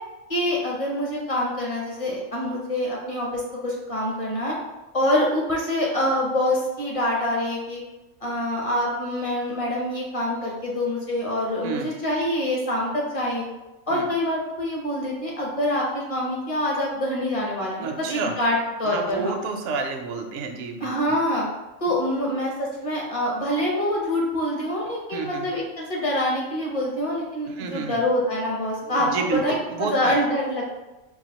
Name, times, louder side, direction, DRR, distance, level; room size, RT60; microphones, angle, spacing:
voice 1, 0.3-4.5 4.9-7.8 8.2-13.5 13.9-19.3 20.8-21.5 21.8-30.7, left 1 dB, 30° left, -3 dB, 0.7 m, -25 dB
voice 2, 17.8-18.3 18.8-21.2 25.1-25.5 27.5-28.0 28.8-30.2, right 4 dB, 70° right, 3 dB, 0.8 m, -30 dB
4.8 x 2.3 x 2.9 m, 1.0 s
omnidirectional pair, 1.4 m